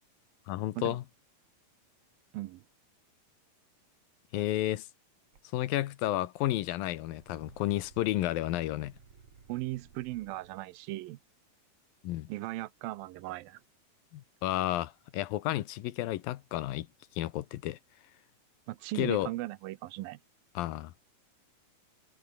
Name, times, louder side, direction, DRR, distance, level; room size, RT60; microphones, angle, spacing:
voice 1, 0.5-1.0 4.3-4.9 5.5-8.9 12.0-12.3 14.1-16.9 17.2-17.8 19.0-19.3 20.5-20.9, left 15 dB, 80° left, 2.8 m, -31 dB
sound 1, 5.3-5.4 5.8-6.4 6.7-10.6, right 5 dB, 45° right, 4.0 m, -57 dB
voice 2, 9.5-11.2 12.3-13.6 18.7-20.2, right 17 dB, 85° right, 2.6 m, -37 dB
omnidirectional pair, 4.1 m